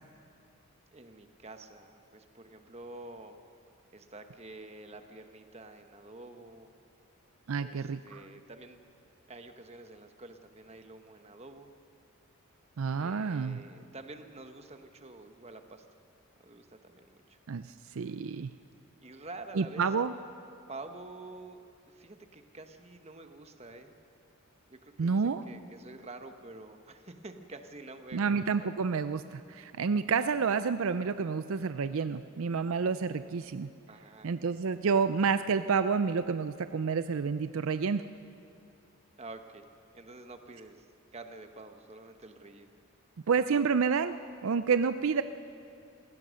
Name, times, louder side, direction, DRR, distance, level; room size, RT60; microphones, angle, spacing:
voice 1, 0.9-3.4 3.9-6.7 7.6-8.8 9.3-11.7 13.0-15.8 16.4-17.4 19.0-19.8 20.7-24.0 24.7-28.7 33.9-34.3 39.2-39.6 39.9-40.9 41.1-42.8, right 2 dB, 30° right, 7 dB, 1.1 m, -48 dB
voice 2, 7.5-8.2 12.8-13.6 17.5-18.5 19.6-20.1 25.0-25.4 28.1-33.7 34.2-38.0 43.3-44.1 44.4-45.2, right 5 dB, 65° right, 12 dB, 0.4 m, -29 dB
27.0 x 16.0 x 6.4 m, 2.5 s
head